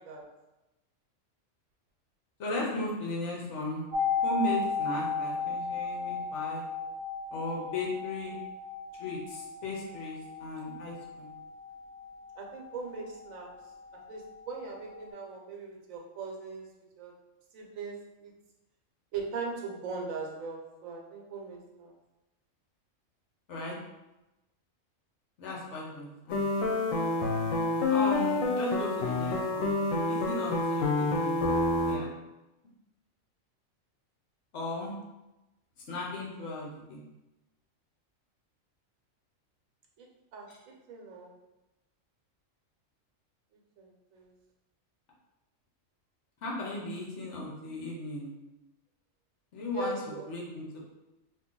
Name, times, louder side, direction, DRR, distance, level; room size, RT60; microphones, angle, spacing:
voice 1, 2.4-3.9 4.2-6.6 7.3-8.4 9.0-11.3 23.5-23.7 25.4-26.6 27.9-29.8 30.1-31.4 31.8-32.1 34.5-34.9 35.9-37.0 40.5-40.6 46.4-48.3 49.5-49.9 50.3-50.8, left 2 dB, 65° left, -3 dB, 1.1 m, -36 dB
sound 1, 3.9-13.7 13.9-14.0, left 5 dB, 60° right, 0.7 m, -34 dB
voice 2, 12.4-13.5 14.1-16.6 17.0-17.1 17.5-17.9 18.2-18.3 19.1-21.9 40.0-40.1 40.3-40.5 40.9-41.3 43.8-44.3 49.7-50.2, right 4 dB, 85° right, 0 dB, 1.1 m, -39 dB
sound 2, 26.3-32.0, left 2 dB, 90° left, 1.0 m, -28 dB
2.7 x 2.5 x 3.7 m, 1.0 s
omnidirectional pair, 1.4 m